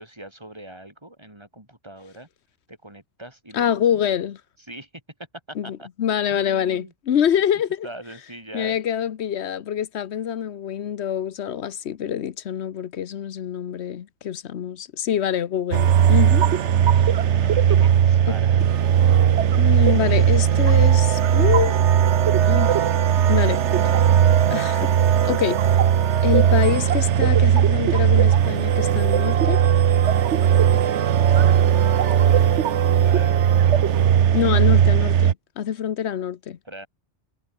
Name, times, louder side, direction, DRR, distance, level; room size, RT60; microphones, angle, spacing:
voice 1, 0.0-2.3 2.7-4.0 4.6-4.9 5.5-5.9 6.3-6.9 7.8-8.8 16.5-18.6 31.1-33.4 36.6-36.9, right 1 dB, 25° right, 5.2 m, -42 dB
voice 2, 3.5-4.4 5.6-7.9 8.5-16.4 19.6-21.8 22.5-22.9 23.3-23.9 24.5-24.9 25.2-25.7 26.2-29.6 34.3-36.6, left 9 dB, 75° left, 1.1 m, -25 dB
sound 1, 15.7-35.3, right 9 dB, 80° right, 1.2 m, -18 dB
omnidirectional pair, 1.2 m